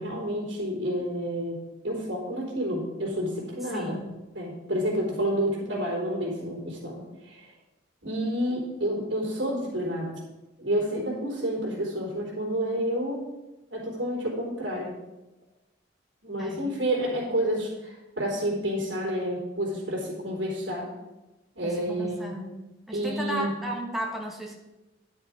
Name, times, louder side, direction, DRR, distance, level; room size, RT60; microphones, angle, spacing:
voice 1, 0.0-1.6 1.8-4.0 4.3-7.5 8.0-10.2 10.6-13.2 13.7-14.9 16.2-20.9 21.6-22.3 22.9-23.5, equal, 80° right, -5 dB, 3.7 m, -29 dB
voice 2, 3.7-4.0 16.4-16.6 21.6-24.6, right 1 dB, ahead, 0 dB, 1.5 m, -35 dB
10.5 x 6.4 x 5.0 m, 1.0 s
head